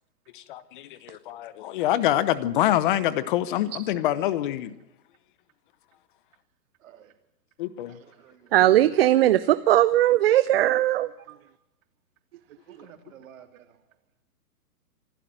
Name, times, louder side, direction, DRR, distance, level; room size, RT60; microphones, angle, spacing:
voice 1, 0.3-4.7 7.6-8.0, left 13 dB, 30° left, 16 dB, 0.9 m, -26 dB
voice 2, 6.8-7.1 7.9-8.6 11.3-11.4 12.7-13.6, right 10 dB, 55° right, 7 dB, 3.3 m, -51 dB
voice 3, 8.5-11.1, right 13 dB, 40° right, 14 dB, 0.7 m, -19 dB
25.5 x 12.0 x 8.9 m, 0.91 s
hypercardioid pair, 140°, 47 cm